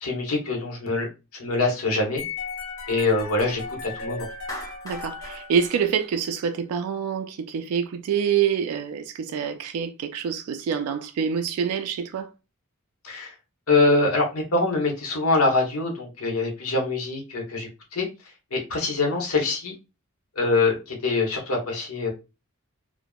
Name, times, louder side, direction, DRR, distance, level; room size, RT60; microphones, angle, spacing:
voice 1, 0.0-1.1 1.4-2.2 2.9-4.3 13.0-13.3 13.7-18.1 18.5-19.7 20.4-22.1, left 3 dB, 80° left, 0.9 m, -24 dB
sound 1, 2.2-6.3, left 4 dB, 65° left, 0.7 m, -36 dB
Clapping, 4.5-6.8, left 1 dB, 15° left, 0.5 m, -40 dB
voice 2, 4.8-12.3, right 7 dB, 85° right, 0.3 m, -26 dB
3.4 x 2.0 x 2.2 m
head